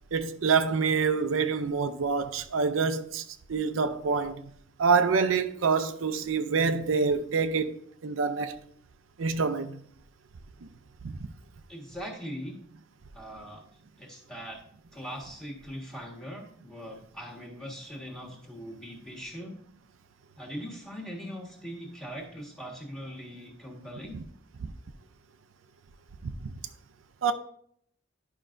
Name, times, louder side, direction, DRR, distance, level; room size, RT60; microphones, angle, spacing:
voice 1, 0.1-4.4 4.8-7.8 8.0-8.6 9.2-9.8 11.0-11.3 24.1-24.2 24.6-24.7 26.2-26.5 27.2-27.3, right 5 dB, 85° right, 0.5 m, -26 dB
voice 2, 11.7-12.6 13.1-13.6 14.0-14.6 14.9-19.6 20.4-24.2, equal, 5° left, 1.5 m, -41 dB
11.0 x 5.4 x 2.5 m
head